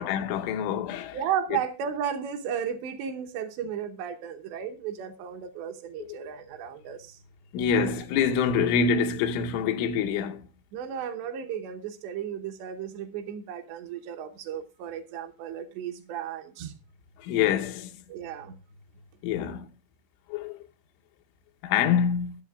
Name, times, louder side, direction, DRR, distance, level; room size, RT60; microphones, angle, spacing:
voice 1, 0.0-1.2 6.0-6.2 7.5-10.4 17.2-17.9 19.2-19.7 20.3-20.6 21.6-22.4, left 7 dB, 85° left, 3.4 m, -26 dB
voice 2, 1.1-7.2 10.7-16.8 18.1-18.6, right 8 dB, 75° right, 3.0 m, -34 dB
20.5 x 7.6 x 2.3 m
omnidirectional pair, 5.3 m